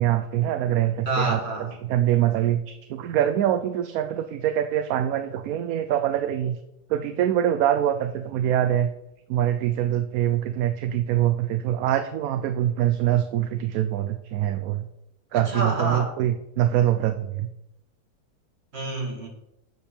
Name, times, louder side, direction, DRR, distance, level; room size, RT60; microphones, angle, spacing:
voice 1, 0.0-1.4 1.8-6.6 6.9-8.9 9.3-14.8 15.3-17.5, right 11 dB, 70° right, 9 dB, 1.0 m, -24 dB
voice 2, 1.1-1.7 15.3-16.1 18.7-19.3, right 2 dB, 40° right, 1 dB, 2.1 m, -28 dB
10.5 x 7.1 x 4.4 m, 0.87 s
omnidirectional pair, 1.7 m